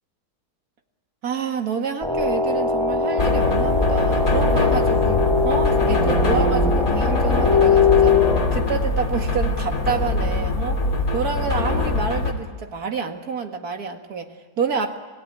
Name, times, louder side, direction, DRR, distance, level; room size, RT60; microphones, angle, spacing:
voice 1, 1.2-5.2 5.4-8.2 8.5-10.8 11.1-15.0, right 5 dB, 70° right, 5 dB, 2.2 m, -28 dB
sound 1, 2.0-8.4, left 5 dB, ahead, 4.6 m, -21 dB
sound 2, 3.2-12.3, left 2 dB, 60° left, 3.1 m, -22 dB
26.5 x 17.5 x 9.8 m, 1.3 s
omnidirectional pair, 1.7 m